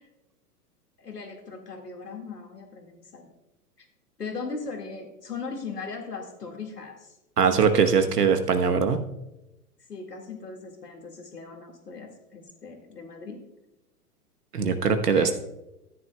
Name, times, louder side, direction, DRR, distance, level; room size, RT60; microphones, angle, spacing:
voice 1, 1.0-3.3 3.8-3.9 4.2-7.2 9.9-13.4 15.1-15.4, left 4 dB, 80° left, 3 dB, 2.1 m, -38 dB
voice 2, 7.4-9.0 14.5-15.3, right 6 dB, 75° right, 8 dB, 1.1 m, -21 dB
13.5 x 9.5 x 2.3 m, 0.92 s
figure-of-eight pair, 105°, 47 cm